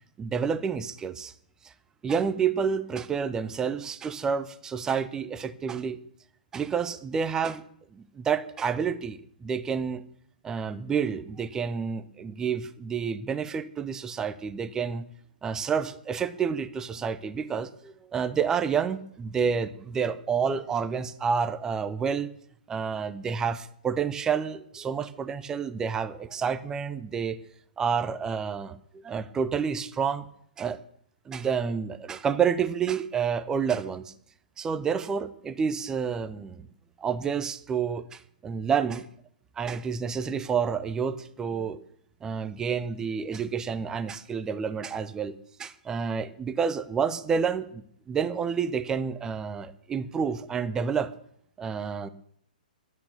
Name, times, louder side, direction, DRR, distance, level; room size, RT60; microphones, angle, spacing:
voice 1, 0.2-1.3 1.6-1.7 2.0-6.0 6.5-7.6 8.2-10.0 10.4-15.1 15.4-22.3 22.7-27.4 27.8-30.3 30.6-30.8 31.3-34.1 34.6-36.7 37.0-39.0 39.6-41.8 42.2-51.1 51.6-52.1, right 6 dB, 15° right, 13 dB, 0.7 m, -29 dB
13.0 x 10.5 x 6.9 m, 0.66 s
figure-of-eight pair, 120°, 5 cm